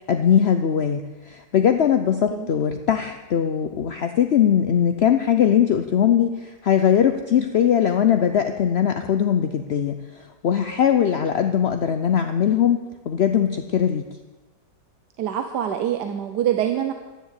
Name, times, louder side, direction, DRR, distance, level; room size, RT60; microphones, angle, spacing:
voice 1, 0.1-10.0 10.4-12.8 13.1-14.1, left 9 dB, 65° left, 7 dB, 0.6 m, -20 dB
voice 2, 15.2-16.9, right 10 dB, 75° right, 7 dB, 1.4 m, -25 dB
12.5 x 10.0 x 8.3 m, 1.2 s
omnidirectional pair, 1.9 m